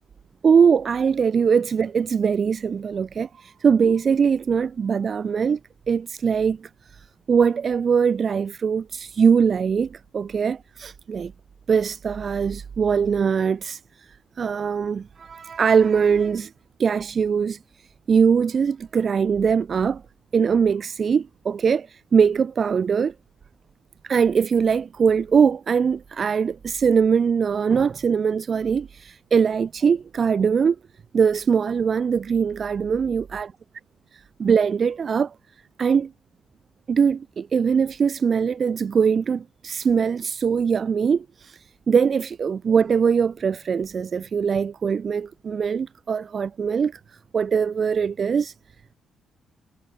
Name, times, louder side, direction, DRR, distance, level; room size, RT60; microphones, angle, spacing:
voice 1, 0.4-5.6 5.9-11.3 11.7-14.1 14.4-16.5 16.8-17.6 18.1-20.0 20.3-23.1 24.0-30.8 31.1-33.5 34.4-35.3 35.8-36.1 36.9-47.0 47.3-48.5, right 6 dB, 40° right, 0.6 m, -21 dB
cardioid pair, 115°, 0 cm